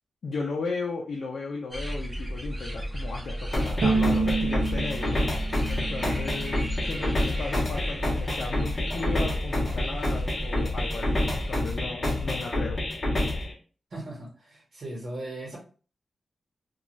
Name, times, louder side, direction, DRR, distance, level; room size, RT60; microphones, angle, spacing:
voice 1, 0.2-5.2 5.7-12.8, left 4 dB, 70° left, -1 dB, 0.4 m, -35 dB
sound 1, 1.7-11.6, equal, 10° right, 0.5 m, -34 dB
sound 2, 3.5-13.5, left 1 dB, 30° left, 0.7 m, -28 dB
Bowed string instrument, 3.8-7.0, right 4 dB, 85° right, 0.7 m, -29 dB
voice 2, 13.9-15.6, right 1 dB, 55° right, -3 dB, 1.1 m, -38 dB
2.5 x 2.3 x 3.0 m, 0.38 s
wide cardioid pair, 180°, 0 cm